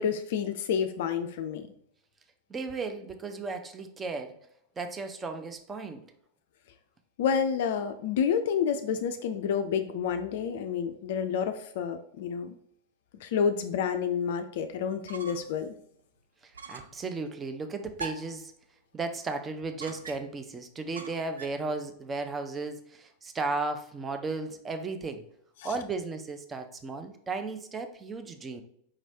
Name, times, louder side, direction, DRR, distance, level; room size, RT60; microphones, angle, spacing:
voice 1, 0.0-1.7 7.2-12.5 13.2-15.7, left 7 dB, 55° left, 8 dB, 0.3 m, -29 dB
voice 2, 2.5-4.4 4.8-6.0 16.4-18.5 18.9-25.2 25.6-28.6, right 3 dB, 20° right, 6 dB, 0.5 m, -35 dB
sound 1, 14.9-15.6 15.9-16.0 16.5-17.0 18.0-18.4 19.8-20.4 21.0-21.7, right 4 dB, 70° right, 0.4 m, -42 dB
4.9 x 3.0 x 2.7 m, 0.67 s
figure-of-eight pair, 90°, 0 cm